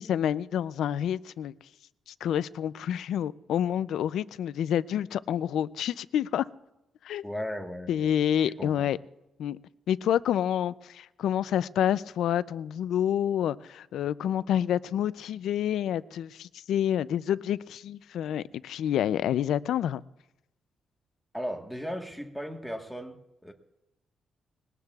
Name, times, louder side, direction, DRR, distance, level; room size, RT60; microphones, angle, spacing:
voice 1, 0.0-1.5 2.1-6.4 7.0-7.2 7.9-9.0 9.4-9.6 9.9-20.0, left 10 dB, 85° left, 0.4 m, -28 dB
voice 2, 7.2-8.2 8.4-8.9 21.3-23.5, equal, ahead, 1.4 m, -37 dB
21.5 x 19.0 x 2.4 m
cardioid pair, 135°, 0 cm